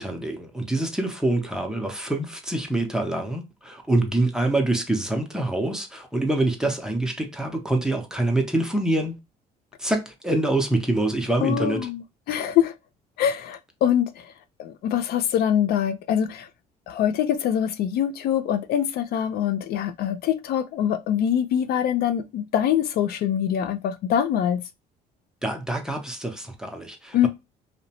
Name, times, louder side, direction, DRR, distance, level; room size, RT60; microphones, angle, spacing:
voice 1, 0.0-9.2 9.8-11.9 25.4-27.3, right 2 dB, 5° right, 0.6 m, -25 dB
voice 2, 11.4-12.7 13.2-14.3 14.6-16.5 16.9-24.6 27.1-27.3, left 9 dB, 65° left, 0.4 m, -24 dB
2.7 x 2.0 x 2.7 m
cardioid pair, 110°, 17 cm